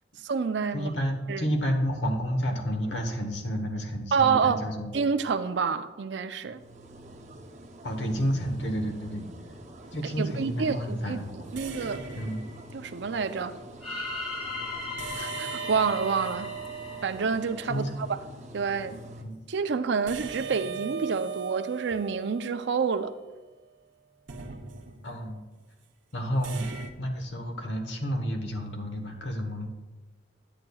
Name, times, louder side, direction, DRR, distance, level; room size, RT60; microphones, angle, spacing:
voice 1, 0.2-0.9 1.3-1.5 4.1-4.6 4.9-6.6 10.0-11.2 11.5-12.0 12.7-13.5 15.2-16.5 17.0-18.2 18.5-19.0 19.5-23.1, right 5 dB, 70° right, 0.5 m, -28 dB
voice 2, 0.7-4.9 7.8-9.3 9.9-11.5 12.2-12.4 17.7-17.9 19.2-19.4 25.0-25.4 26.1-26.7 27.0-29.7, equal, 75° left, 1.2 m, -30 dB
sound 1, 6.5-19.2, right 1 dB, 40° right, 0.8 m, -47 dB
sound 2, 9.8-10.1 11.5-13.1 15.0-18.0 20.1-23.4 24.3-25.3 26.4-26.9, right 6 dB, 90° right, 0.8 m, -39 dB
sound 3, 13.8-17.9, left 3 dB, 35° left, 2.4 m, -37 dB
9.8 x 9.0 x 2.3 m
head